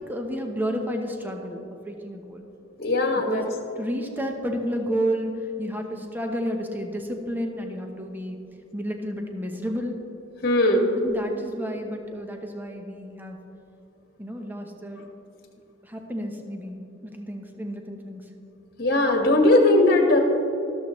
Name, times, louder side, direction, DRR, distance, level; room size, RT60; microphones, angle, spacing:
voice 1, 0.0-2.5 3.3-3.5 3.8-8.4 8.7-10.0 11.0-13.4 14.2-15.0 15.8-18.3, equal, 10° right, 3 dB, 0.9 m, -31 dB
voice 2, 2.8-3.4 10.4-10.9 18.8-20.2, left 2 dB, 55° left, 2 dB, 1.6 m, -19 dB
12.5 x 12.5 x 3.2 m, 2.8 s
head